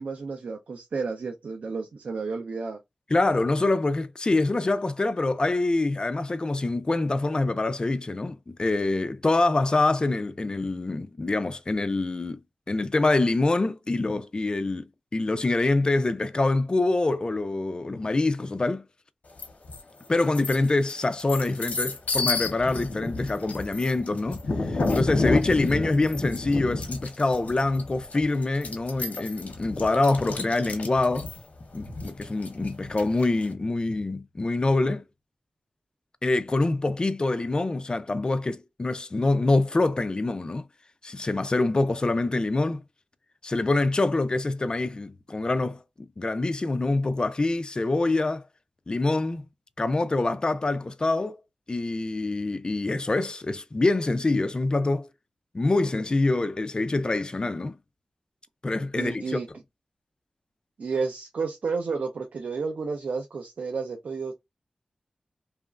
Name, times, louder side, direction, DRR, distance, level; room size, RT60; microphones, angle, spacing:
voice 1, 0.0-2.8 58.9-59.5 60.8-64.3, right 4 dB, 75° right, 0.5 m, -31 dB
voice 2, 3.1-12.4 12.7-14.9 15.1-18.8 20.1-31.3 31.7-35.0 36.2-40.7 41.0-42.8 43.4-45.8 46.2-48.4 48.9-49.5 49.8-51.4 51.7-55.1 55.5-57.8 58.6-59.4, left 2 dB, 35° left, 0.4 m, -25 dB
sound 1, 19.4-19.8 20.2-33.5, left 3 dB, 75° left, 0.8 m, -31 dB
2.9 x 2.4 x 2.4 m
wide cardioid pair, 65°, 2 cm